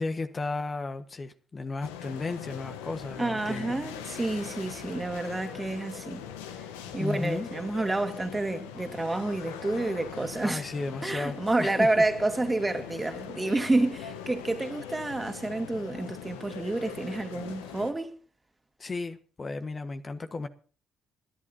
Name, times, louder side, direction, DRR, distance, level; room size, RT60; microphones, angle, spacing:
voice 1, 0.0-3.8 7.0-7.5 10.4-11.9 18.8-20.5, left 3 dB, 35° left, 1.4 m, -34 dB
sound 1, 1.8-17.9, left 8 dB, 85° left, 1.2 m, -41 dB
voice 2, 3.2-6.3 6.9-10.6 11.0-18.1, right 2 dB, 20° right, 2.4 m, -29 dB
26.0 x 11.0 x 2.8 m
hypercardioid pair, 50°, 0 cm